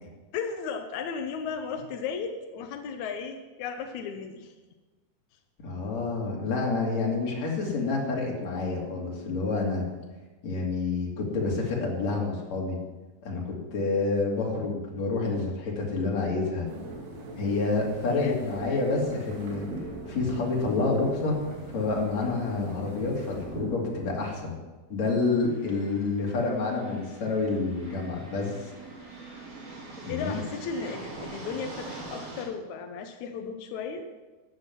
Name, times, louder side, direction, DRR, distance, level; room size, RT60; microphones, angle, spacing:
voice 1, 0.3-4.5 18.1-18.3 18.7-18.8 30.1-34.0, left 6 dB, 75° left, 5 dB, 1.7 m, -35 dB
voice 2, 5.6-9.8 10.4-12.8 13.2-16.7 17.4-19.7 20.1-24.6 24.9-28.5 30.0-30.4, left 3 dB, 45° left, -2 dB, 3.6 m, -28 dB
sound 1, 16.6-24.4, right 2 dB, 85° right, 4.3 m, -41 dB
sound 2, 25.2-32.4, right 3 dB, 70° right, 5.4 m, -43 dB
13.5 x 9.6 x 6.0 m, 1.2 s
omnidirectional pair, 4.5 m